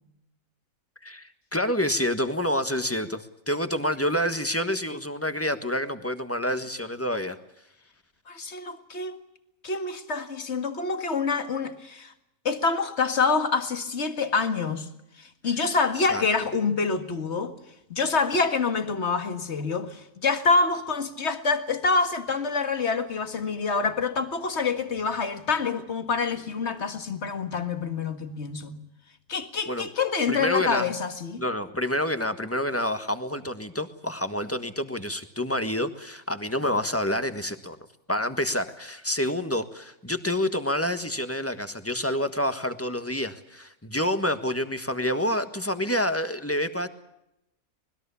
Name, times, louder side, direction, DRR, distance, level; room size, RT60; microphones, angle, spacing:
voice 1, 1.0-7.4 16.1-16.2 29.7-29.9 30.3-30.9 31.4-37.8 38.1-46.9, left 1 dB, 10° left, 1.3 m, -28 dB
voice 2, 8.3-9.2 9.6-12.1 12.5-14.9 15.2-17.5 17.9-28.8 29.3-31.4, left 4 dB, 45° left, 2.1 m, -26 dB
25.5 x 20.5 x 7.0 m
omnidirectional pair, 1.6 m